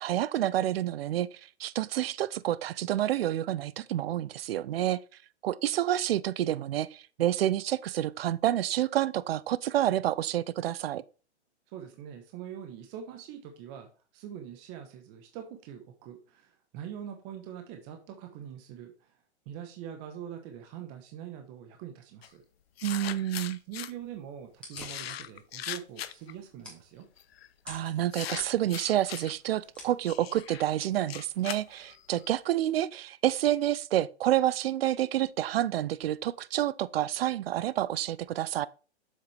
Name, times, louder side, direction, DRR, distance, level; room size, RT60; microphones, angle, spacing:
voice 1, 0.0-5.0 5.4-11.0 22.8-23.6 27.7-38.7, right 12 dB, 60° right, 0.6 m, -29 dB
voice 2, 11.7-19.2 19.4-22.4 23.7-27.1, right 9 dB, 30° right, 1.2 m, -43 dB
sound 1, 22.2-22.3 22.8-23.9 24.7-26.3 27.2-27.5 28.1-29.3 30.0-32.3, left 11 dB, 60° left, 0.7 m, -40 dB
sound 2, 24.5-32.3, left 1 dB, 5° left, 2.7 m, -52 dB
7.4 x 6.5 x 3.4 m
hypercardioid pair, 135°, 34 cm